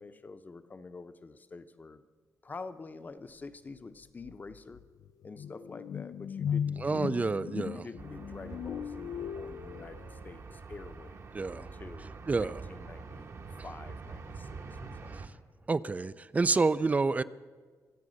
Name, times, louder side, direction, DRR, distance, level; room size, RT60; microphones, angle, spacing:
voice 1, 0.0-2.1 2.4-4.8 5.2-7.1 7.7-15.2, left 3 dB, 30° left, 10 dB, 0.7 m, -47 dB
sound 1, 3.8-3.9 4.2-10.4, left 8 dB, 70° left, 0.4 m, -38 dB
voice 2, 6.8-7.8 11.3-11.7 12.3-12.6 15.7-17.2, right 3 dB, 25° right, 16 dB, 0.4 m, -28 dB
sound 2, 8.0-15.3, right 4 dB, 50° right, 1.2 m, -45 dB
23.5 x 8.3 x 6.4 m, 1.5 s
wide cardioid pair, 135°, 6 cm